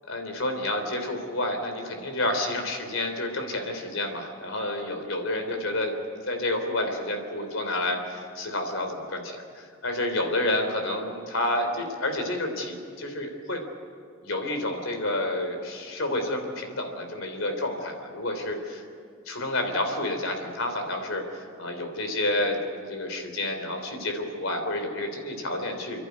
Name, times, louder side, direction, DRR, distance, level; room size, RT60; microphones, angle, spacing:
voice 1, 0.1-5.9 6.3-13.6 14.2-18.8 19.3-26.1, left 1 dB, 85° left, 5 dB, 3.3 m, -29 dB
30.0 x 11.5 x 9.5 m, 2.2 s
head